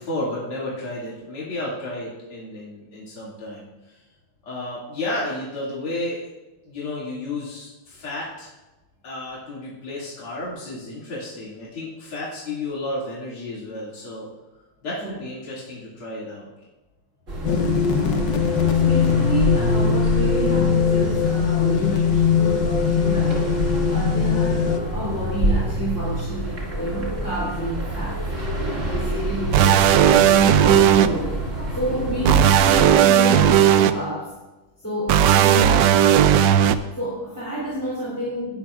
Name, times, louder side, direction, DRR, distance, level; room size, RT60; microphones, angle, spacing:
voice 1, 0.0-4.0 4.4-6.2 6.6-8.5 9.0-14.3 14.8-16.5, left 2 dB, 80° left, -7 dB, 3.3 m, -32 dB
sound 1, 17.3-32.9, right 1 dB, 35° right, 2.4 m, -27 dB
sound 2, 17.4-24.8, left 7 dB, 60° left, 1.4 m, -21 dB
voice 2, 17.5-28.2 28.9-34.3 34.8-38.6, right 1 dB, 10° left, -7 dB, 2.7 m, -30 dB
sound 3, 29.5-31.1 32.3-33.9 35.1-36.8, right 10 dB, 75° right, 1.0 m, -15 dB
19.0 x 11.0 x 2.4 m, 1.1 s
omnidirectional pair, 2.4 m